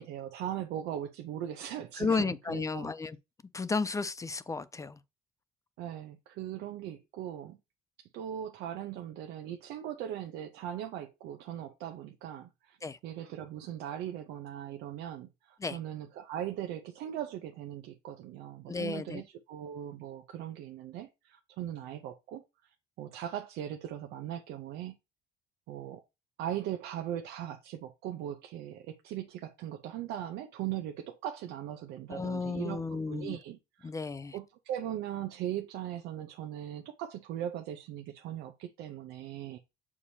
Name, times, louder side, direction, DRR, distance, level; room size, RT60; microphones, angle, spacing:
voice 1, 0.0-2.9 5.8-7.6 8.0-12.8 13.0-22.4 23.0-25.0 25.7-26.0 26.4-33.9 34.3-39.6, right 11 dB, 85° right, 0.7 m, -39 dB
voice 2, 2.0-3.2 3.5-5.0 12.8-13.0 15.6-15.8 18.7-19.2 32.1-33.4 33.8-34.4, left 4 dB, 20° left, 0.4 m, -33 dB
7.0 x 4.8 x 2.8 m
cardioid pair, 110°, 17 cm